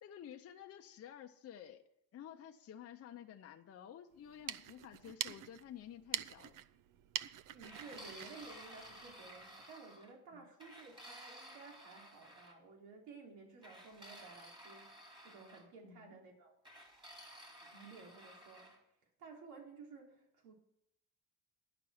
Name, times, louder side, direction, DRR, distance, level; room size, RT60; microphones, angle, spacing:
voice 1, 0.0-1.8 2.1-6.6 10.3-10.5 15.8-16.2, left 10 dB, 40° left, 4 dB, 0.7 m, -52 dB
sound 1, 4.2-9.5, right 12 dB, 55° right, 0.5 m, -45 dB
voice 2, 7.5-14.9 15.2-16.6 17.6-18.7 19.2-20.5, right 4 dB, 70° right, 0 dB, 3.4 m, -55 dB
sound 2, 7.6-10.1 10.6-12.5 13.6-15.7 16.6-18.8, equal, 10° right, 2.5 m, -55 dB
11.0 x 6.0 x 7.7 m, 0.80 s
cardioid pair, 145°, 38 cm